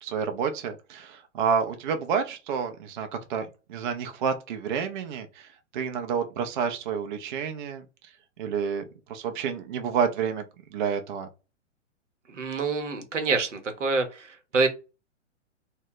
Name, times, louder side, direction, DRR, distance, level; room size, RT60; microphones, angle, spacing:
voice 1, 0.0-10.4 10.7-11.3, right 6 dB, 45° right, 0.4 m, -29 dB
voice 2, 12.3-14.3 14.5-14.7, right 4 dB, 80° right, 0.8 m, -26 dB
2.1 x 2.0 x 3.7 m
figure-of-eight pair, 115°, 37 cm